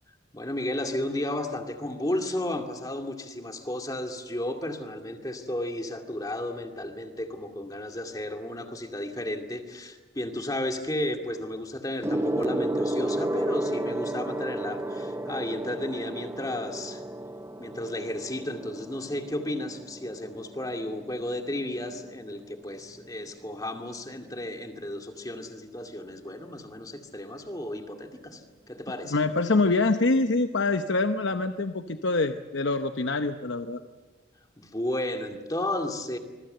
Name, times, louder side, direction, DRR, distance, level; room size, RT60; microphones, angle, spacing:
voice 1, 0.3-17.0 17.6-29.1 34.6-36.2, left 1 dB, 20° left, 4 dB, 2.3 m, -33 dB
Gong, 12.0-21.8 22.7-23.0, right 1 dB, 15° right, 0.7 m, -33 dB
voice 2, 29.1-33.8, left 3 dB, 70° left, 8 dB, 0.9 m, -25 dB
26.0 x 21.5 x 7.9 m, 1.3 s
head